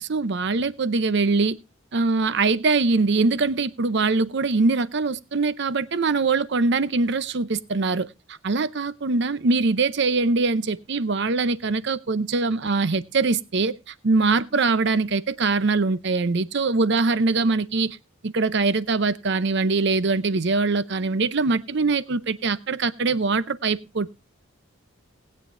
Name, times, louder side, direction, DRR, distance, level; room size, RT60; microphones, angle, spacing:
voice 1, 0.0-1.6 1.9-18.0 18.2-24.2, right 3 dB, 60° right, 0.7 m, -23 dB
19.5 x 9.3 x 2.6 m
head